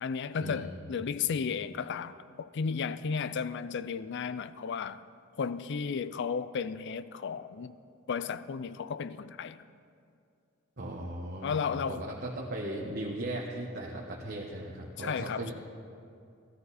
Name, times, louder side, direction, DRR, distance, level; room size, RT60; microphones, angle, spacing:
voice 1, 0.0-5.0 5.4-7.8 8.1-9.7 11.4-12.1 15.0-15.5, left 6 dB, 60° left, 0.4 m, -34 dB
voice 2, 10.8-15.5, right 1 dB, 55° right, 1.2 m, -37 dB
16.0 x 13.0 x 4.1 m
head